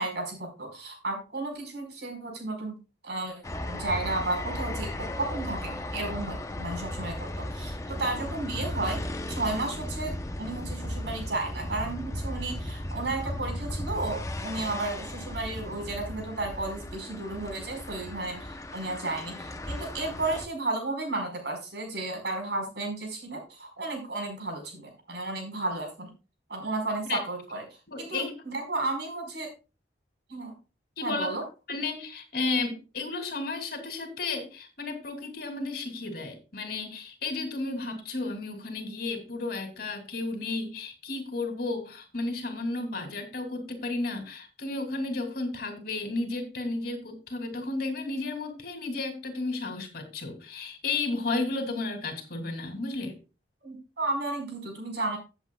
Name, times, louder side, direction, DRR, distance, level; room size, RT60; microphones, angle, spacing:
voice 1, 0.0-2.8 3.0-3.3 3.7-26.1 26.5-27.6 28.0-29.5 30.3-30.5 31.0-31.4 53.6-55.2, right 2 dB, 70° right, 2 dB, 4.8 m, -33 dB
sound 1, 3.4-20.5, left 1 dB, 15° left, 0.8 m, -36 dB
voice 2, 27.9-28.3 31.0-31.3 31.7-53.2, left 3 dB, 55° left, 4 dB, 2.7 m, -33 dB
16.0 x 8.0 x 2.3 m, 0.31 s
head